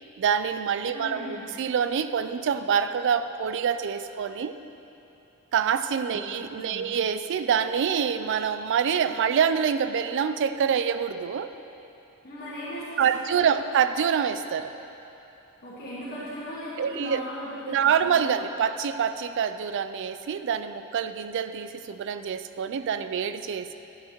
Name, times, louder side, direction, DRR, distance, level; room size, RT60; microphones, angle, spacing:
voice 1, 0.2-4.6 5.5-11.5 13.0-14.7 16.8-17.2 17.7-23.7, right 7 dB, 60° right, 11 dB, 0.3 m, -26 dB
voice 2, 0.8-1.5 6.1-6.9 12.2-13.7 15.6-18.3, equal, 45° left, -10 dB, 1.6 m, -38 dB
9.5 x 9.5 x 3.0 m, 2.9 s
head